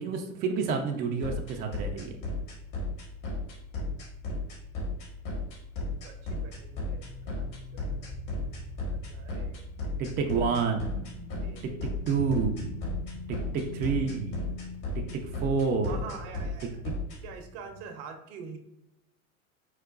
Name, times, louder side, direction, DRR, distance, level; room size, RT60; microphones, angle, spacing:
voice 1, 0.0-2.2 10.0-11.0 11.6-11.7 12.1-12.7 13.3-14.4 14.9-16.1, right 5 dB, 25° right, 3 dB, 0.4 m, -29 dB
sound 1, 1.2-17.2, left 2 dB, 50° left, 1.3 m, -34 dB
voice 2, 6.0-7.5 7.7-8.1 8.9-9.6 11.4-11.8 15.9-16.8 17.2-18.6, right 5 dB, 55° right, 5 dB, 0.7 m, -45 dB
sound 2, 6.5-17.8, left 1 dB, 30° left, 0.6 m, -44 dB
4.7 x 2.1 x 2.4 m, 0.85 s
hypercardioid pair, 90°, 41 cm